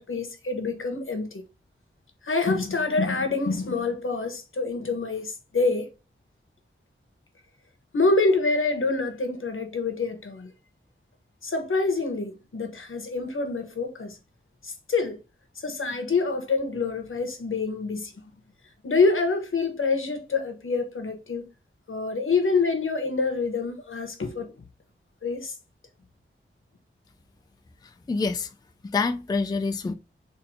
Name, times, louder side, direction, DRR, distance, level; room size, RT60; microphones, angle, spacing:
voice 1, 0.0-1.4 2.2-5.9 7.9-10.5 11.4-14.2 14.6-15.2 15.6-18.1 18.8-21.5 21.9-24.5 25.2-25.5, left 3 dB, 75° left, 1.0 m, -26 dB
voice 2, 28.1-28.5 28.8-29.9, left 4 dB, 20° left, 0.3 m, -26 dB
4.1 x 2.6 x 2.6 m
wide cardioid pair, 80°, 21 cm